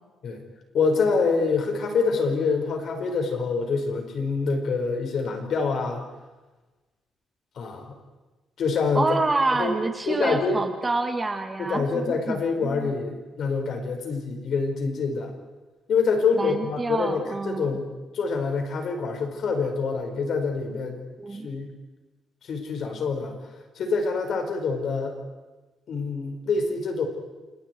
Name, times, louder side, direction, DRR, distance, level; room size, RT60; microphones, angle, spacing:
voice 1, 0.7-6.0 7.6-7.9 8.6-9.1 9.5-9.7 10.1-10.6 11.6-15.3 15.9-17.9 18.1-21.0 21.4-21.7 22.4-23.3 23.8-25.2 25.9-27.1, left 4 dB, 60° left, 3 dB, 5.4 m, -26 dB
voice 2, 8.9-12.9 16.3-17.7 21.2-21.5, right 3 dB, 20° right, 5 dB, 2.4 m, -27 dB
29.5 x 28.5 x 4.8 m, 1.2 s
cardioid pair, 120°, 0 cm